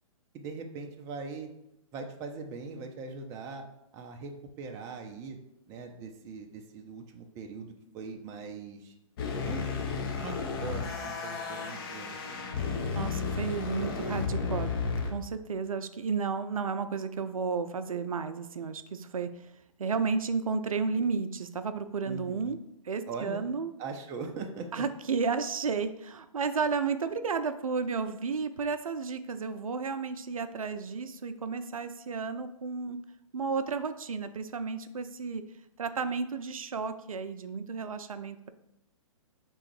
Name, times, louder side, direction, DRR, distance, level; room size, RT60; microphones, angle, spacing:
voice 1, 0.3-1.5 1.9-3.6 3.9-5.4 5.7-8.9 9.4-9.8 10.1-12.2 22.1-22.6 23.1-23.5 23.8-24.8, right 4 dB, 15° right, 3 dB, 0.4 m, -41 dB
sound 1, 9.2-15.1, left 4 dB, 40° left, 0.7 m, -33 dB
voice 2, 12.9-14.7 15.1-19.5 19.8-22.6 22.8-23.7 24.7-33.0 33.3-35.4 35.8-38.5, right 5 dB, 80° right, 10 dB, 0.4 m, -32 dB
3.6 x 3.1 x 4.6 m, 0.82 s
figure-of-eight pair, 130°, 18 cm